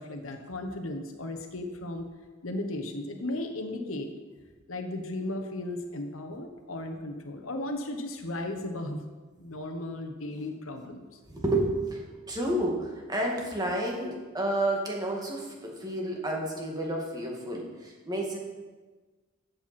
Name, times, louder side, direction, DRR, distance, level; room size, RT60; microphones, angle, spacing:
voice 1, 0.0-2.1 2.4-4.1 4.7-9.0 9.4-11.0, left 1 dB, 75° left, 5 dB, 1.2 m, -35 dB
voice 2, 11.3-18.4, right 1 dB, 20° right, -1 dB, 2.0 m, -30 dB
14.0 x 8.2 x 4.4 m, 1.3 s
head